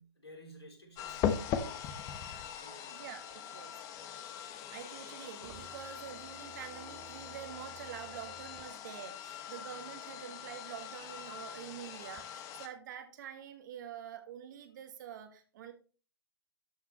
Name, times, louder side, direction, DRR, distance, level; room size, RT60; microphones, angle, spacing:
voice 1, 0.0-1.9 2.6-3.0, equal, 80° left, 1 dB, 3.7 m, -52 dB
sound 1, 1.0-12.7, left 8 dB, 25° left, 1.0 m, -41 dB
voice 2, 2.9-3.8 4.7-15.7, right 9 dB, 45° right, 7 dB, 1.6 m, -47 dB
sound 2, 3.0-10.1 10.5-12.2, right 12 dB, 20° right, 0.7 m, -57 dB
12.5 x 5.8 x 3.1 m, 0.37 s
figure-of-eight pair, 120°, 13 cm